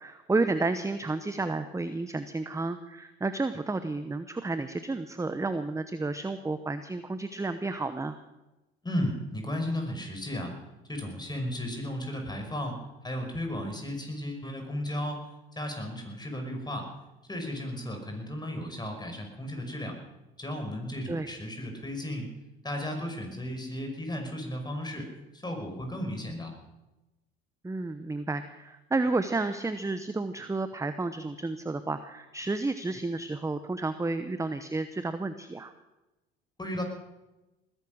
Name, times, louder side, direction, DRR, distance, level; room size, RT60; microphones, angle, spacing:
voice 1, 0.0-8.2 21.1-21.4 27.6-35.7, right 3 dB, 10° right, 11 dB, 0.9 m, -31 dB
voice 2, 8.8-10.5 10.9-15.2 15.5-16.9 17.3-20.0 20.4-22.3 22.6-25.1 25.4-26.5 36.6-36.8, left 1 dB, 15° left, 4 dB, 5.5 m, -34 dB
20.0 x 11.0 x 6.4 m, 1.0 s
hypercardioid pair, 70°, 29 cm